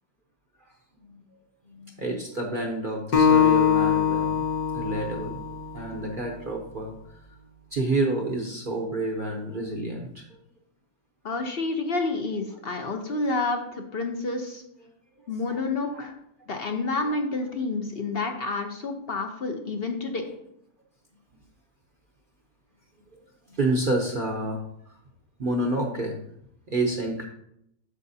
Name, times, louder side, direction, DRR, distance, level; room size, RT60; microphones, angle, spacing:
voice 1, 1.7-4.5 4.7-5.4 5.7-6.9 7.7-10.3 15.5-15.6 15.9-16.1 23.5-24.6 25.4-26.2 26.7-27.3, right 2 dB, 45° right, 0 dB, 0.8 m, -29 dB
Acoustic guitar, 3.1-6.4, left 8 dB, 80° left, 1.8 m, -23 dB
voice 2, 11.2-14.6 15.3-16.1 16.5-20.3, left 3 dB, 50° left, 4 dB, 0.7 m, -29 dB
8.3 x 6.9 x 2.7 m, 0.74 s
omnidirectional pair, 1.7 m